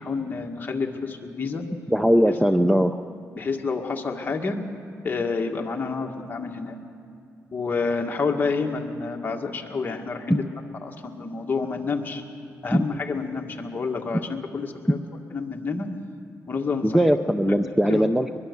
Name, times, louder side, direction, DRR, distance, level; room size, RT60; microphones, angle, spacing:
voice 1, 0.1-1.6 3.4-4.6 5.0-6.8 7.5-10.4 10.8-12.2 12.6-14.2 14.5-15.0 15.3-15.9 16.5-17.0 17.4-17.6 17.8-18.0, left 4 dB, 35° left, 1 dB, 2.0 m, -28 dB
voice 2, 1.9-3.0 10.3-10.4 12.7-12.8 16.8-18.4, equal, 5° right, 9 dB, 0.6 m, -20 dB
22.5 x 22.5 x 6.9 m, 2.4 s
cardioid pair, 120°, 6 cm